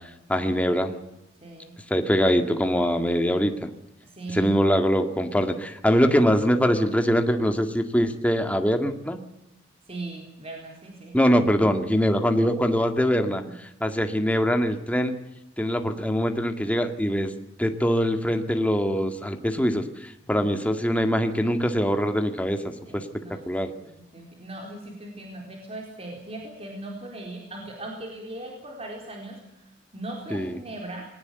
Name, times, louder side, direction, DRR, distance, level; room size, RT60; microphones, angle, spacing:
voice 1, 0.3-0.9 1.9-3.7 4.3-9.2 11.1-15.1 15.6-17.3 17.6-23.7 30.3-30.6, equal, 10° left, 6 dB, 2.0 m, -23 dB
voice 2, 1.4-1.7 4.0-4.5 9.9-11.1 11.5-11.6 13.3-13.6 22.9-23.4 23.8-29.6 29.9-31.1, right 2 dB, 35° right, 0 dB, 4.4 m, -39 dB
21.0 x 18.5 x 8.2 m, 0.85 s
head